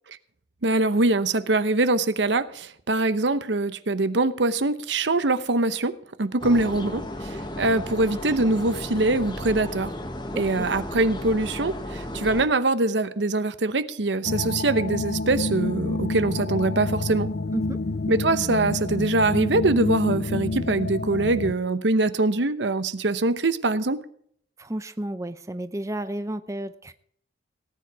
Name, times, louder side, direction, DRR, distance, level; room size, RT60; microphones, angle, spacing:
voice 1, 0.6-5.9 6.2-9.9 10.4-17.3 18.1-24.0, right 2 dB, 75° right, 13 dB, 0.9 m, -23 dB
sound 1, 6.4-12.5, left 1 dB, 25° left, 1.6 m, -34 dB
voice 2, 10.3-10.7 17.5-17.8 24.6-26.9, right 1 dB, 15° right, 11 dB, 0.6 m, -32 dB
sound 2, 14.2-21.5, left 2 dB, 60° left, 0.7 m, -28 dB
18.5 x 9.6 x 4.7 m, 0.62 s
head